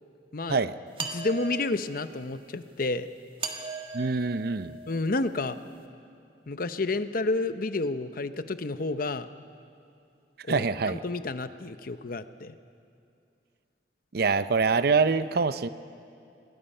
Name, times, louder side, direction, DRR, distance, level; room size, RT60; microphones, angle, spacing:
sound 1, 1.0-2.1 3.4-5.3, right 4 dB, 30° right, 1.6 m, -38 dB
voice 1, 1.1-3.1 4.9-5.6 6.5-9.3 10.5-12.6, left 2 dB, 55° left, 11 dB, 0.7 m, -30 dB
voice 2, 3.9-4.8 10.5-11.0 14.1-15.7, right 4 dB, 60° right, 13 dB, 0.6 m, -25 dB
26.5 x 20.5 x 5.6 m, 2.5 s
head